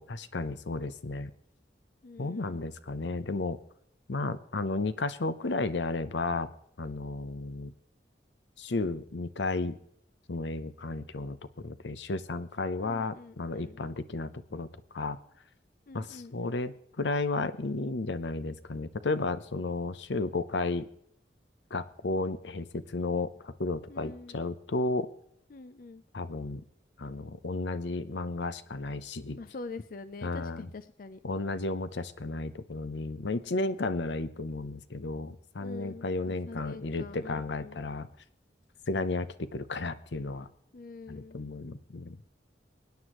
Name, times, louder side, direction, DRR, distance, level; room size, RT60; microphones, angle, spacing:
voice 1, 0.0-1.3 2.2-3.6 4.1-6.5 6.8-7.7 8.6-9.8 10.3-14.7 14.9-15.2 15.9-20.9 21.7-25.1 26.1-26.6 27.0-29.4 30.2-30.7 31.2-38.1 38.9-40.5 41.1-42.2, left 3 dB, 80° left, 13 dB, 0.7 m, -33 dB
voice 2, 2.0-2.7 12.8-13.8 15.9-16.6 23.9-24.4 25.5-26.0 29.4-31.2 35.6-37.8 40.7-41.4, left 3 dB, 50° left, 12 dB, 0.5 m, -45 dB
24.0 x 9.5 x 3.0 m, 0.71 s
head